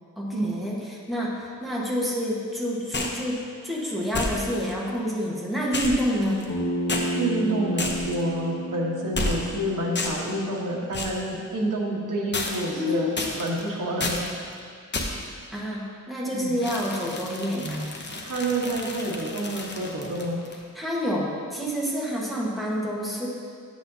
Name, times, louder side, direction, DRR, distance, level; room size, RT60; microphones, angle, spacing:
voice 1, 0.2-6.5 12.7-13.1 15.5-17.9 20.7-23.3, equal, ahead, -5 dB, 1.2 m, -28 dB
sound 1, 2.9-3.2 4.1-4.7 5.7-6.6 6.9-7.1 7.8-8.2 9.1-9.6 9.9-10.3 10.9-11.2 12.3-12.8 13.2-13.6 14.0-14.3 14.9-15.3 16.6-20.6, left 2 dB, 35° left, 0.7 m, -31 dB
Bass guitar, 6.5-10.8, equal, 70° left, 1.1 m, -31 dB
voice 2, 7.1-13.1 13.3-14.2 16.3-16.5 18.2-20.4, right 1 dB, 75° right, -3 dB, 1.2 m, -28 dB
8.3 x 7.7 x 2.7 m, 2.2 s
wide cardioid pair, 130°, 32 cm